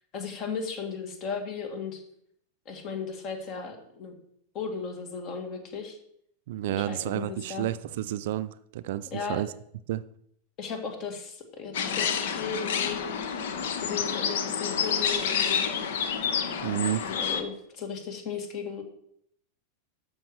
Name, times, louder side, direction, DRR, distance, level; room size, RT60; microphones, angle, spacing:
voice 1, 0.1-2.0 2.7-4.2 4.5-6.0 6.7-7.7 9.1-9.4 10.6-13.0 13.8-15.7 17.0-18.8, left 5 dB, 35° left, 1.9 m, -36 dB
voice 2, 6.5-9.5 9.9-10.0 16.6-17.1, right 13 dB, 55° right, 0.4 m, -30 dB
sound 1, 11.7-17.4, left 7 dB, 55° left, 0.9 m, -29 dB
13.0 x 5.3 x 4.6 m
figure-of-eight pair, 90°, 0 cm